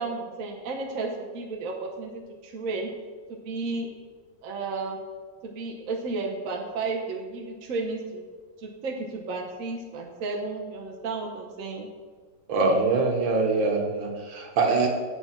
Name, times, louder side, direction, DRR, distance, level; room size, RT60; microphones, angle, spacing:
voice 1, 0.0-2.9 3.4-3.9 4.4-5.0 5.4-8.2 8.6-11.9, right 3 dB, 55° right, 1 dB, 1.1 m, -33 dB
voice 2, 12.5-14.9, right 3 dB, 80° right, 3 dB, 1.9 m, -23 dB
8.6 x 5.5 x 5.9 m, 1.5 s
omnidirectional pair, 2.1 m